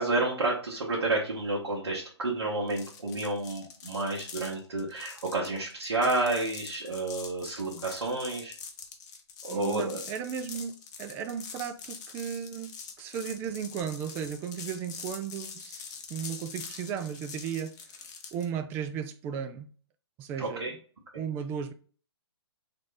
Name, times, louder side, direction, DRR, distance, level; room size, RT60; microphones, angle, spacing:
voice 1, 0.0-8.5 9.4-10.0 20.4-20.7, right 2 dB, 65° right, 1.5 m, -30 dB
sound 1, 2.7-18.5, left 6 dB, 40° left, 0.9 m, -44 dB
voice 2, 9.5-10.7 11.0-12.7 13.0-18.0 18.3-19.7 20.2-20.7 21.1-21.7, right 8 dB, 15° right, 0.3 m, -35 dB
3.4 x 3.2 x 4.0 m
hypercardioid pair, 135°, 14 cm